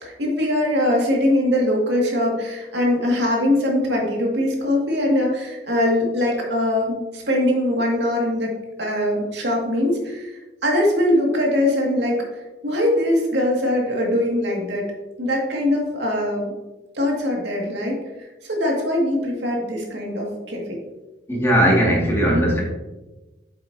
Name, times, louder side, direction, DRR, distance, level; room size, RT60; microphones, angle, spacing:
voice 1, 0.0-8.5 8.8-12.2 12.6-14.9 15.2-16.5 16.9-20.8, left 1 dB, 85° right, -1 dB, 2.0 m, -22 dB
voice 2, 21.3-22.6, equal, 15° left, -3 dB, 2.0 m, -18 dB
8.1 x 7.7 x 2.7 m, 1.1 s
head